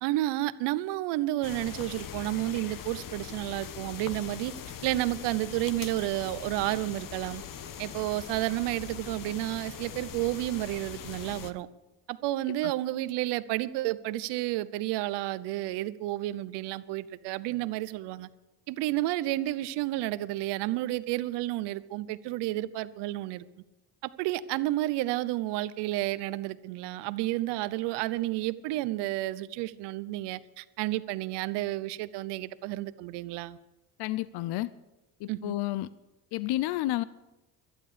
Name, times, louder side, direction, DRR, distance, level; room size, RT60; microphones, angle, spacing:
voice 1, 0.0-4.5 4.8-7.4 7.8-11.7 12.1-18.3 18.7-23.4 24.2-33.6 35.3-35.6, right 16 dB, 80° right, 0.8 m, -31 dB
sound 1, 1.4-11.5, left 9 dB, 50° left, 1.1 m, -41 dB
voice 2, 34.0-34.7 35.2-35.9 36.3-37.0, left 16 dB, 70° left, 0.6 m, -30 dB
18.5 x 12.0 x 5.0 m
supercardioid pair, 85°, 41 cm